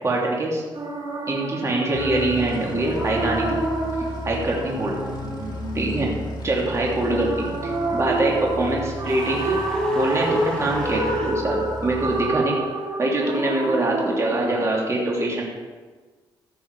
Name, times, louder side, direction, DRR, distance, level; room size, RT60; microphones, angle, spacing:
voice 1, 0.0-0.6 1.3-3.6 4.2-5.0 5.7-6.1 6.4-9.6 9.9-12.6 13.0-15.4, right 2 dB, 35° right, -2 dB, 2.8 m, -24 dB
sound 1, 0.7-14.7, right 2 dB, 55° right, 4.1 m, -28 dB
sound 2, 2.0-12.3, left 1 dB, 50° left, 2.0 m, -35 dB
sound 3, 9.0-11.3, equal, 10° left, 2.5 m, -34 dB
15.0 x 7.1 x 4.7 m, 1.4 s
cardioid pair, 105°, 9 cm